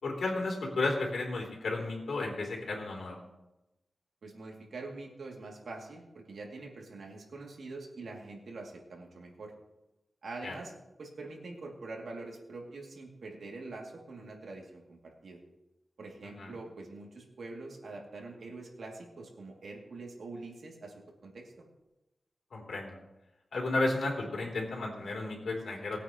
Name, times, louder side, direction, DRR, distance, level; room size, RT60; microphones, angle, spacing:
voice 1, 0.0-3.2 10.4-10.5 16.4-16.5 22.5-23.0 23.5-26.0, left 2 dB, 85° left, -2 dB, 3.5 m, -33 dB
voice 2, 4.2-9.5 10.2-10.7 11.0-15.4 16.0-20.9 21.2-21.5, right 3 dB, 80° right, -1 dB, 2.6 m, -44 dB
20.5 x 8.9 x 3.1 m, 0.97 s
wide cardioid pair, 95°, 0 cm